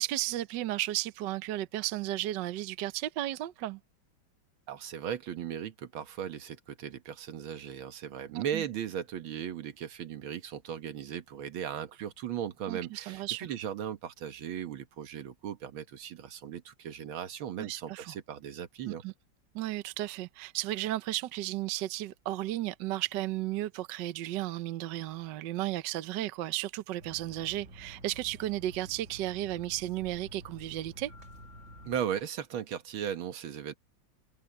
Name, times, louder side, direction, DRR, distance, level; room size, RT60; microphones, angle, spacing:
voice 1, 0.0-3.8 8.3-8.6 12.7-13.5 17.6-18.1 18.9-19.1 19.5-31.1, right 15 dB, 70° right, 1.3 m, -34 dB
voice 2, 4.7-19.0 31.9-33.7, right 9 dB, 85° right, 2.0 m, -37 dB
sound 1, 27.0-32.0, right 1 dB, 35° right, 2.3 m, -50 dB
omnidirectional pair, 2.2 m